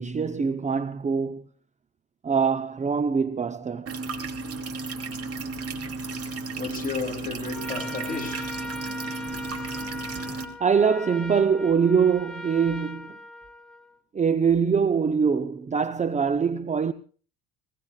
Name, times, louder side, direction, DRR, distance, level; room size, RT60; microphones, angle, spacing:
voice 1, 0.0-1.4 2.2-3.9 10.6-13.2 14.1-16.9, right 6 dB, 20° right, 0.7 m, -23 dB
sound 1, 3.9-10.5, right 3 dB, 40° right, 2.6 m, -33 dB
voice 2, 5.9-9.6, left 5 dB, 20° left, 2.7 m, -36 dB
Trumpet, 7.4-14.0, left 1 dB, ahead, 2.5 m, -40 dB
21.0 x 20.0 x 2.3 m
supercardioid pair, 100°, 39 cm